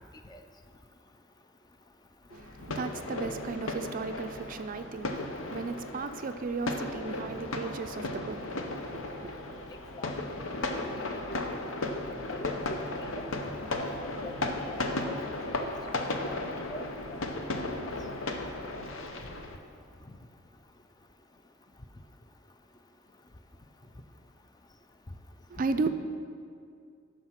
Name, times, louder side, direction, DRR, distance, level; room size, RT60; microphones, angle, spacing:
sound 1, 2.3-19.6, left 2 dB, 80° left, 0.8 m, -35 dB
voice 1, 2.3-9.3 25.5-25.9, right 4 dB, 45° right, 0.4 m, -35 dB
voice 2, 12.3-12.8 13.2-13.3 13.8-14.3 15.0-15.2 16.2-16.3 16.7-17.2, left 1 dB, 20° left, 0.4 m, -42 dB
11.5 x 4.7 x 5.8 m
head